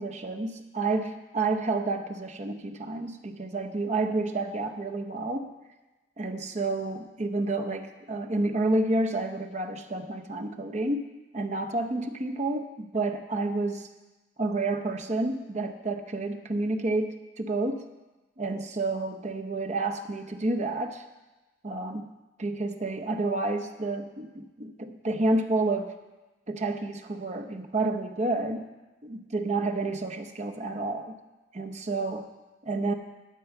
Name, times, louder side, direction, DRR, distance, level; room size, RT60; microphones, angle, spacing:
voice 1, 0.0-5.5 6.2-11.1 11.3-13.9 14.4-17.8 18.4-21.0 21.6-22.1 22.4-26.0 26.5-28.7 29.0-31.2 31.5-32.3 32.6-32.9, right 2 dB, 35° right, 5 dB, 0.7 m, -30 dB
12.0 x 4.6 x 8.2 m, 1.1 s
head